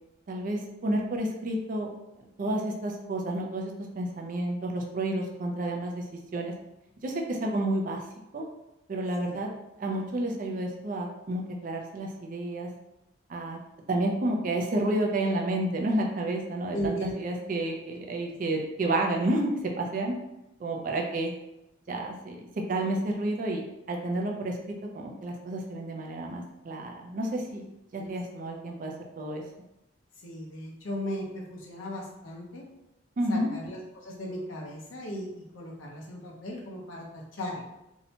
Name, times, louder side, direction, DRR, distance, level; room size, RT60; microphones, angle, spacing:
voice 1, 0.3-1.9 2.4-6.0 6.3-6.5 7.0-8.1 8.3-8.4 8.9-9.5 9.8-12.7 13.3-13.6 13.9-20.1 20.6-21.3 21.9-22.4 22.7-24.6 24.9-27.6 27.9-29.4 33.2-33.5, right 1 dB, 40° right, 1 dB, 0.3 m, -30 dB
voice 2, 16.7-17.1 27.9-28.2 30.2-32.6 33.3-37.6, equal, 80° left, -2 dB, 0.7 m, -37 dB
2.7 x 2.1 x 2.7 m, 0.91 s
head